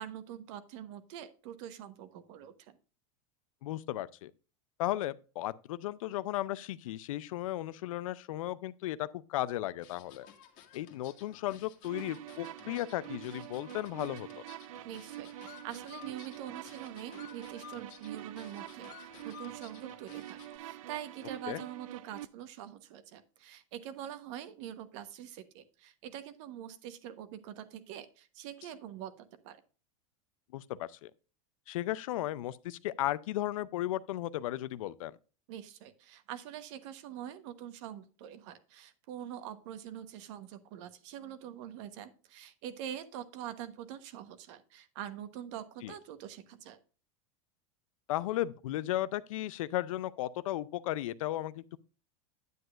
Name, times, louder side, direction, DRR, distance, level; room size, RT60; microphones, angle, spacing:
voice 1, 0.0-2.8 14.8-29.6 35.5-46.8, right 10 dB, 65° right, 1.1 m, -45 dB
voice 2, 3.6-4.3 4.8-10.3 10.7-14.3 21.5-21.6 30.5-31.1 31.7-35.1 45.8-45.9 48.1-51.8, left 14 dB, 80° left, 0.5 m, -35 dB
sound 1, 9.8-20.6, left 10 dB, 50° left, 1.6 m, -55 dB
sound 2, 11.8-22.3, right 14 dB, 80° right, 0.5 m, -46 dB
9.3 x 7.9 x 2.5 m
supercardioid pair, 120°, 17 cm